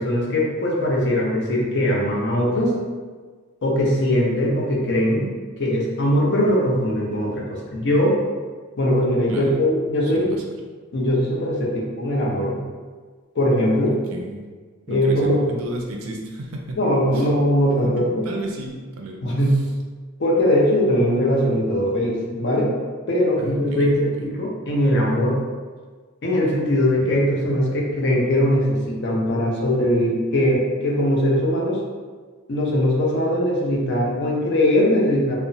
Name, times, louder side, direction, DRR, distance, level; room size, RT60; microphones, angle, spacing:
voice 1, 0.0-2.7 3.6-8.2 8.8-10.4 10.9-12.6 13.3-14.0 14.9-15.4 16.8-18.3 19.2-19.5 20.2-22.7 23.1-25.4 26.2-31.8 32.5-35.4, equal, 55° left, -3 dB, 0.5 m, -20 dB
voice 2, 10.0-10.4 13.8-14.4 14.9-16.8 17.1-17.3 17.8-17.9 18.2-19.4 23.4-24.3, right 1 dB, 75° right, 1 dB, 0.4 m, -33 dB
2.8 x 2.0 x 2.6 m, 1.5 s
head